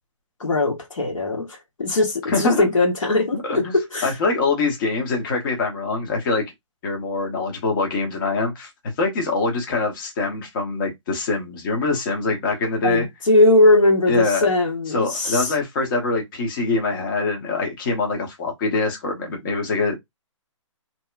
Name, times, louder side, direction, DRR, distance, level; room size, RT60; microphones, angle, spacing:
voice 1, 0.4-4.1 12.8-15.5, left 2 dB, 80° left, 1.2 m, -19 dB
voice 2, 2.3-2.7 3.4-3.7 4.0-6.4 6.8-8.7 9.0-13.1 14.1-14.5 14.9-20.0, left 3 dB, 40° left, 0.9 m, -24 dB
2.8 x 2.1 x 2.3 m
hypercardioid pair, 140°, 17 cm